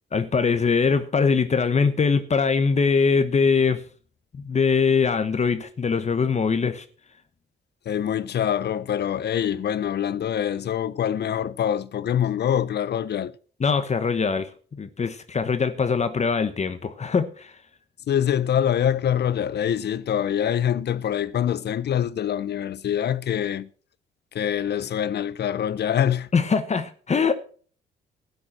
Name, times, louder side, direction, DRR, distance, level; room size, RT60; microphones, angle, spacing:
voice 1, 0.1-3.8 4.3-6.8 13.6-14.5 14.8-17.5 26.3-27.3, left 5 dB, 35° left, 1.1 m, -22 dB
voice 2, 7.9-13.3 18.1-23.7 24.3-26.3, left 9 dB, 55° left, 0.8 m, -25 dB
12.5 x 9.5 x 6.0 m
cardioid pair, 90°, 20 cm